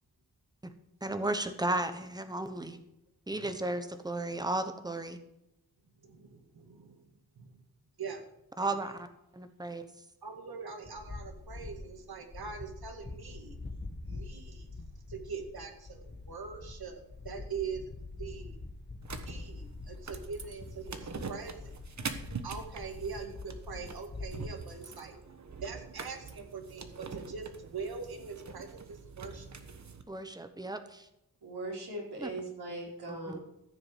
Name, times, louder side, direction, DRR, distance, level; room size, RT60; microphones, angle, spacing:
voice 1, 1.0-2.8 3.3-5.2 8.6-9.1 9.3-9.9 30.1-31.1 32.2-32.3 33.1-33.4, right 2 dB, 10° right, 8 dB, 1.1 m, -34 dB
voice 2, 6.0-7.0 7.4-7.6 8.0-8.2 8.6-8.7 10.2-13.6 14.1-17.8 18.2-18.6 19.3-21.8 22.4-25.2 25.6-29.5, right 5 dB, 70° right, 5 dB, 2.1 m, -42 dB
sound 1, 10.8-12.0 12.3-24.5, left 3 dB, 25° left, 1.5 m, -45 dB
sound 2, 19.0-30.0, right 5 dB, 45° right, 1.2 m, -44 dB
voice 3, 31.4-33.4, right 2 dB, 85° right, -3 dB, 4.9 m, -39 dB
15.0 x 6.6 x 7.6 m, 0.85 s
wide cardioid pair, 160°, 38 cm